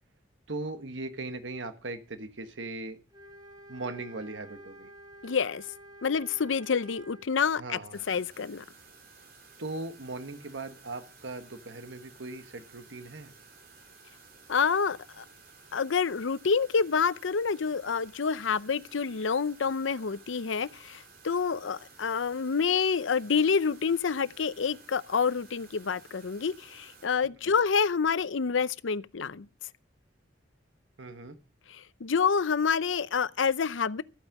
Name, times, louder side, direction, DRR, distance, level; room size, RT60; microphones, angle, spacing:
voice 1, 0.5-3.0 3.7-4.9 7.6-8.1 9.6-13.3 31.0-31.4, right 2 dB, 75° right, 1.3 m, -39 dB
sound 1, 3.1-7.3, right 1 dB, 20° right, 1.9 m, -50 dB
voice 2, 5.2-5.6 6.0-7.8 8.1-8.6 14.5-15.2 15.7-29.5 31.7-34.0, left 5 dB, 85° left, 0.6 m, -28 dB
sound 2, 7.9-27.1, right 4 dB, 50° right, 3.1 m, -55 dB
14.0 x 9.0 x 5.9 m
head